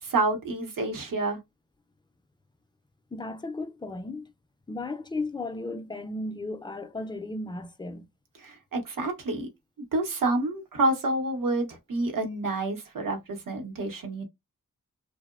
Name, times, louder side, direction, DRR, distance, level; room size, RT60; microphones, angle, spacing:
voice 1, 0.0-1.4 8.4-9.5 9.9-14.2, right 2 dB, 85° right, 0.8 m, -28 dB
voice 2, 3.1-4.3 4.7-8.1, left 2 dB, 15° left, 0.3 m, -35 dB
2.8 x 2.0 x 2.3 m
wide cardioid pair, 90°, 32 cm